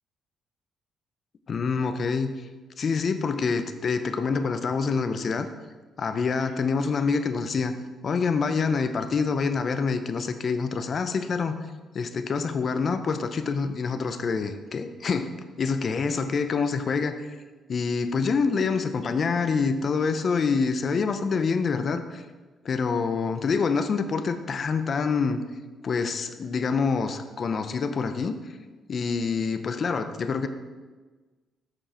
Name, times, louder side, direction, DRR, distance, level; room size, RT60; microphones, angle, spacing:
voice 1, 1.5-2.3 2.8-5.5 6.0-7.7 8.0-11.6 11.9-17.3 17.7-22.2 22.6-25.4 25.8-28.3 28.9-30.5, left 5 dB, 50° left, 9 dB, 0.6 m, -26 dB
6.9 x 6.1 x 4.2 m, 1.3 s
cardioid pair, 90°, 0 cm